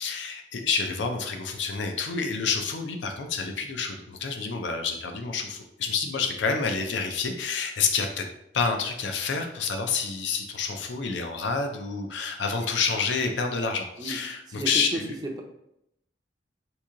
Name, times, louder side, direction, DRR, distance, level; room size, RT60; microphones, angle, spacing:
voice 1, 0.0-8.2 8.5-15.1, left 5 dB, 80° left, 5 dB, 0.5 m, -28 dB
voice 2, 14.5-15.4, right 1 dB, 20° right, 2 dB, 0.4 m, -33 dB
3.0 x 2.7 x 3.6 m, 0.80 s
head